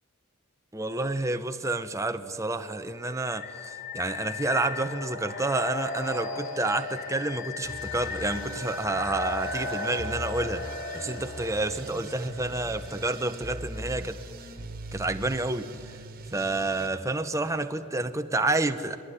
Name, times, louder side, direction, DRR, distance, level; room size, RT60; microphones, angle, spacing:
voice 1, 0.7-10.6 10.9-14.2 14.9-16.0 16.3-19.0, right 2 dB, 15° right, 0.9 m, -29 dB
sound 1, 3.0-13.8, left 3 dB, 45° left, 4.9 m, -37 dB
sound 2, 7.6-16.9, right 1 dB, 40° right, 1.8 m, -41 dB
27.5 x 21.0 x 9.9 m
head